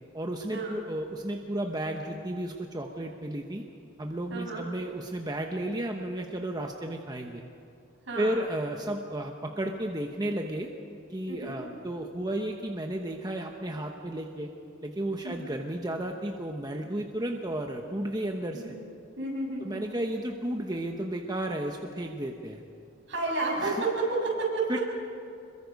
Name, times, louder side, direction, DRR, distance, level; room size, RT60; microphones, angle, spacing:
voice 1, 0.1-3.6 4.0-7.4 8.2-10.7 11.1-14.5 14.8-18.7 19.6-22.6 23.6-23.8 24.7-24.8, right 1 dB, 20° right, 3 dB, 1.0 m, -33 dB
voice 2, 4.3-4.6 8.1-8.4 11.3-11.6 15.2-15.4 18.5-18.8 19.2-19.8 23.1-24.8, right 3 dB, 70° right, -3 dB, 7.4 m, -31 dB
26.5 x 22.5 x 5.3 m, 2.4 s
head